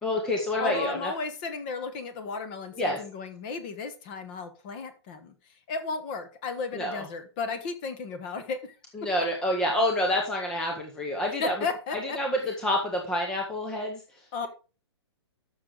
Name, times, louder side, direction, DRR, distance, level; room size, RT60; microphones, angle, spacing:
voice 1, 0.0-1.1 2.8-3.0 6.7-7.0 8.9-11.5 12.0-14.5, left 1 dB, 5° left, 1 dB, 0.7 m, -28 dB
voice 2, 0.6-5.3 5.7-8.7 9.0-9.1 11.4-12.5 14.3-14.5, left 4 dB, 20° left, 10 dB, 1.0 m, -34 dB
12.5 x 6.5 x 3.8 m, 0.35 s
hypercardioid pair, 175°, 15 cm